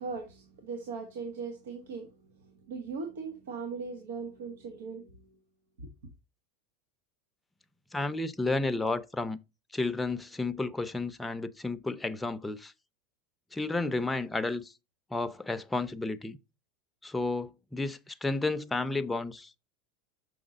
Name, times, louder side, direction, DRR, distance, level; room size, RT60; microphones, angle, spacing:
voice 1, 0.0-2.1 2.4-5.2 5.8-5.9, right 4 dB, 85° right, 1.5 m, -39 dB
voice 2, 7.9-9.4 9.7-12.7 13.5-14.7 15.1-16.4 17.0-19.5, left 2 dB, 10° left, 0.6 m, -32 dB
6.4 x 5.6 x 4.0 m
supercardioid pair, 120°, 0 cm